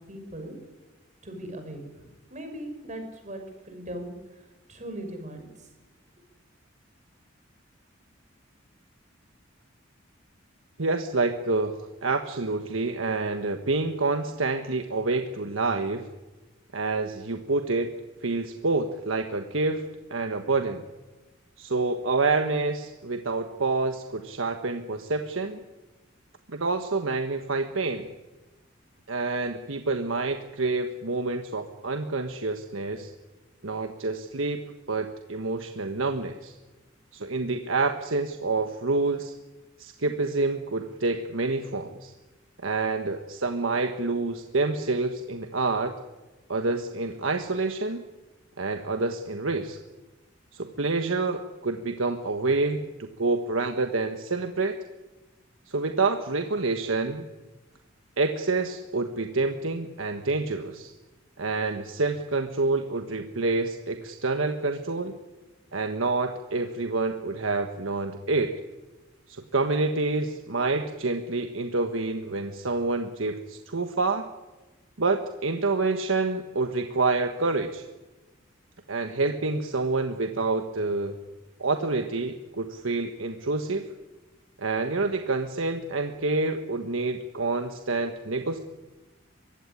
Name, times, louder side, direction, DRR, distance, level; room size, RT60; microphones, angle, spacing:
voice 1, 0.1-0.6 1.2-4.1 4.7-5.7, right 1 dB, 40° right, 5 dB, 5.9 m, -39 dB
voice 2, 10.8-16.1 16.7-17.9 18.2-20.8 21.6-25.6 26.5-28.1 29.1-33.1 33.6-36.5 37.1-39.3 39.8-42.1 42.6-45.9 46.5-48.0 48.6-49.8 50.5-54.8 55.7-57.2 58.2-60.9 61.4-65.1 65.7-68.6 69.3-74.3 75.0-77.9 78.9-81.2 81.6-83.9 84.6-88.6, right 3 dB, 85° right, 6 dB, 1.4 m, -28 dB
23.0 x 16.0 x 9.9 m, 1.1 s
head